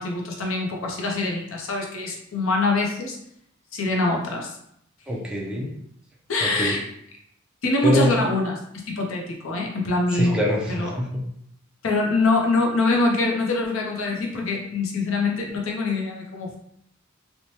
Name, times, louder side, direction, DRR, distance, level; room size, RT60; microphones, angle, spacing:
voice 1, 0.0-3.2 3.7-4.6 6.3-6.8 7.6-10.4 10.7-10.9 11.8-16.6, left 2 dB, 75° left, 0 dB, 0.6 m, -24 dB
voice 2, 5.1-5.7 6.4-6.7 7.8-8.2 10.1-11.2, equal, 5° right, -3 dB, 0.5 m, -24 dB
3.0 x 2.1 x 2.8 m, 0.72 s
head